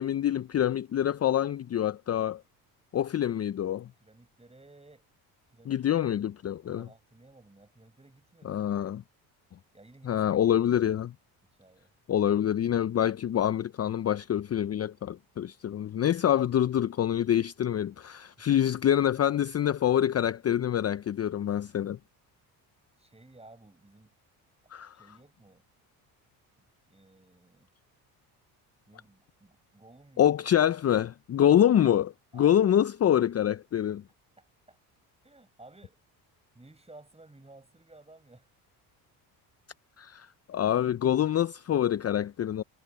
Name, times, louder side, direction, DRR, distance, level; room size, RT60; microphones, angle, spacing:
voice 1, 0.0-2.4 2.9-3.9 5.7-6.9 8.4-9.0 10.1-11.1 12.1-22.0 24.7-25.0 30.2-34.0 40.0-42.6, left 10 dB, 35° left, 0.6 m, -26 dB
voice 2, 4.0-5.1 5.5-6.0 6.7-8.8 9.7-10.9 11.6-11.9 18.4-18.6 23.0-24.2 25.0-25.7 26.6-27.7 28.9-30.5 32.3-32.8 33.7-33.9 34.4-34.8 35.2-36.0 36.5-38.5, right 2 dB, 15° right, 7.3 m, -55 dB
supercardioid pair, 70°, 46 cm